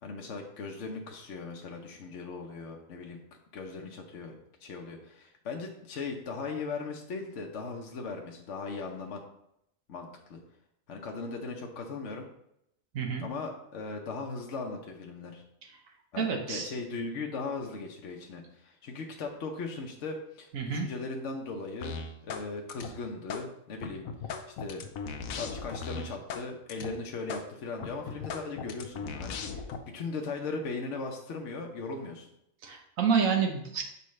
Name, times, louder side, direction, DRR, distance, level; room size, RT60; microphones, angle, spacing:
voice 1, 0.0-3.2 3.5-4.3 4.6-9.2 9.9-10.4 10.9-12.3 13.2-15.4 16.1-21.9 22.2-24.0 24.5-24.8 25.3-29.7 29.9-32.3, left 3 dB, 65° left, 1 dB, 1.1 m, -38 dB
voice 2, 12.9-13.2 16.2-16.7 20.5-20.9 32.6-33.8, right 6 dB, 80° right, 3 dB, 1.4 m, -28 dB
sound 1, 21.8-22.4 22.7-23.4 23.8-26.4 26.7-26.9 27.3-27.4 27.8-29.8, left 5 dB, 85° left, 1.1 m, -37 dB
6.9 x 4.8 x 3.2 m, 0.77 s
omnidirectional pair, 1.4 m